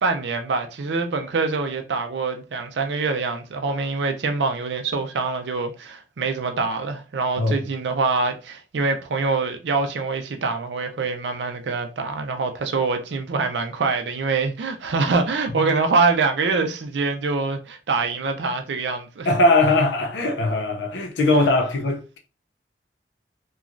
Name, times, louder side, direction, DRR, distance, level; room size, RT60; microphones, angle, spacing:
voice 1, 0.0-19.3, right 4 dB, 80° right, 0.5 m, -24 dB
voice 2, 19.2-22.2, left 2 dB, 85° left, 0.5 m, -20 dB
3.0 x 2.3 x 2.4 m
head